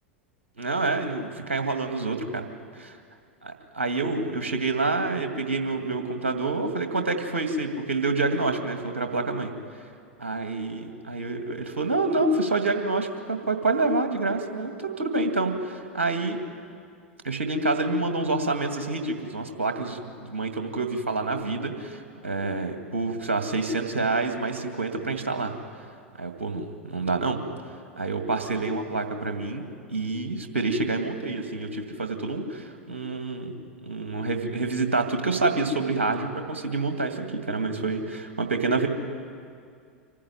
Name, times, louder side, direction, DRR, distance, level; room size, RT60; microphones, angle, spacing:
voice 1, 0.6-2.5 2.7-3.0 3.4-9.5 10.2-16.4 17.2-25.5 26.2-27.4 28.0-33.5 33.8-38.9, right 3 dB, 75° right, 5 dB, 2.2 m, -27 dB
25.5 x 15.0 x 9.3 m, 2.3 s
figure-of-eight pair, 90°, 7 cm